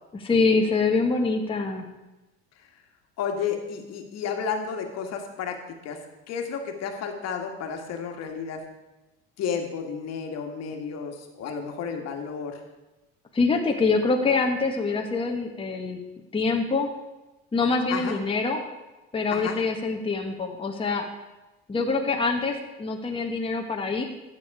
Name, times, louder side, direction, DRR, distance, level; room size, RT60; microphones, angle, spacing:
voice 1, 0.2-1.9 13.3-16.0 16.3-16.9 17.5-18.6 19.1-21.1 21.7-24.0, left 4 dB, 20° left, 1 dB, 1.4 m, -25 dB
voice 2, 3.2-6.0 6.3-8.7 9.4-12.6 17.9-18.2 19.3-19.6, left 6 dB, 60° left, 4 dB, 1.8 m, -32 dB
12.5 x 8.0 x 4.8 m, 1.1 s
supercardioid pair, 110°, 29 cm